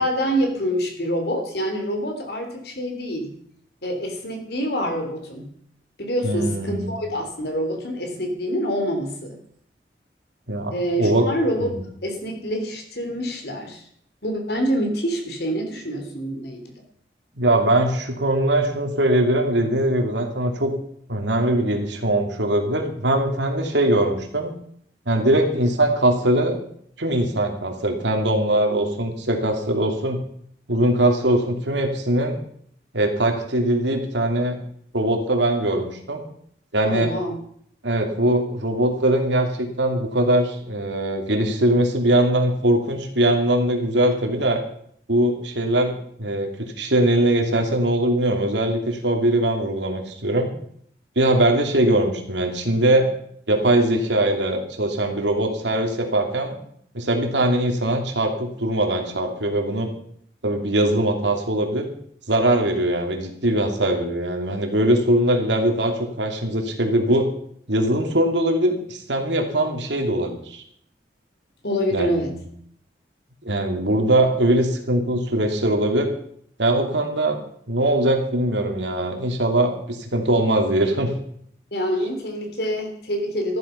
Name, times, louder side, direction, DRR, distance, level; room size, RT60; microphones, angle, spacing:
voice 1, 0.0-3.3 3.8-5.5 6.0-9.3 10.7-11.7 12.0-13.8 14.2-16.7 36.8-37.3 71.6-72.3 81.7-83.6, equal, 65° left, 4 dB, 3.2 m, -26 dB
voice 2, 6.2-6.9 10.5-11.3 11.6-11.8 17.3-20.7 21.1-24.5 25.1-26.6 27.0-30.2 30.7-32.4 32.9-34.6 34.9-36.2 36.7-37.1 37.8-44.6 45.1-50.5 51.2-53.1 53.5-56.5 56.9-59.9 60.4-61.9 62.3-67.3 67.7-70.6 71.9-72.4 73.4-76.1 76.6-77.4 77.7-81.1, right 1 dB, 85° right, 3 dB, 2.8 m, -21 dB
14.0 x 12.0 x 5.8 m, 0.66 s
head